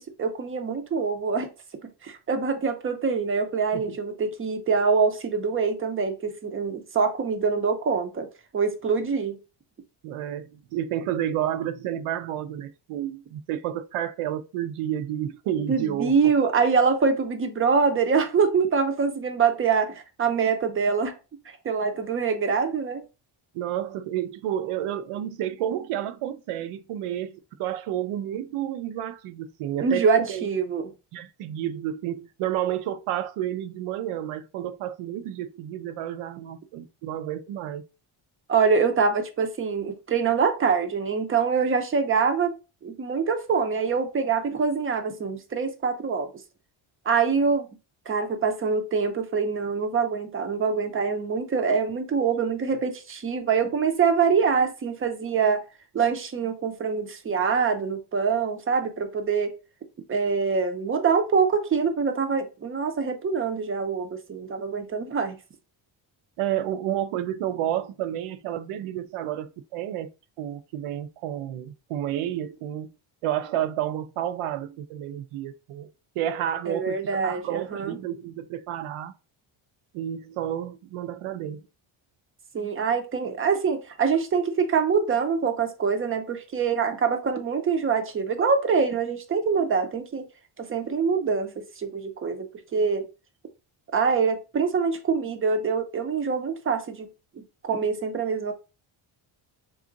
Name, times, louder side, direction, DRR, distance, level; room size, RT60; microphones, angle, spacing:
voice 1, 0.0-1.5 1.8-8.3 8.5-9.4 15.7-21.1 21.6-23.0 29.8-30.9 38.5-46.3 47.1-47.7 48.1-55.6 55.9-59.5 60.1-65.4 76.7-78.0 82.5-90.2 90.6-93.1 93.9-97.1 97.4-98.5, right 5 dB, 25° right, 0.5 m, -25 dB
voice 2, 10.0-16.3 23.5-30.5 31.1-37.8 66.4-70.1 70.4-72.9 73.2-75.9 76.2-79.1 79.9-81.6, right 11 dB, 90° right, 0.6 m, -30 dB
3.6 x 2.4 x 3.8 m
cardioid pair, 170°, 50 cm